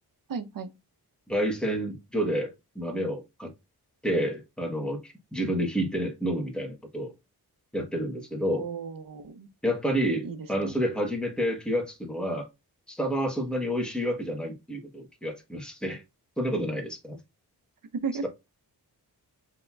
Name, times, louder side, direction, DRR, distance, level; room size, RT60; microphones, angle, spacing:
voice 1, 0.3-0.7 8.5-9.5 10.2-10.7 17.9-18.3, right 5 dB, 55° right, 0.7 m, -34 dB
voice 2, 1.3-3.5 4.0-7.1 7.7-8.7 9.6-12.5 12.9-16.0 16.4-17.2, equal, ahead, 1.1 m, -29 dB
7.6 x 2.8 x 2.3 m
wide cardioid pair, 155°, 40 cm